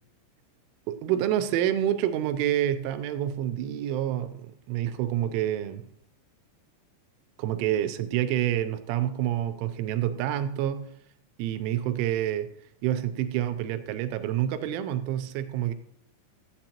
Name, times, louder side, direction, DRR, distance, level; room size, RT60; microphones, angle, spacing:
voice 1, 0.9-5.8 7.4-10.9 11.4-12.5 12.8-15.7, right 11 dB, 85° right, 3.1 m, -28 dB
15.0 x 8.6 x 2.9 m
omnidirectional pair, 5.5 m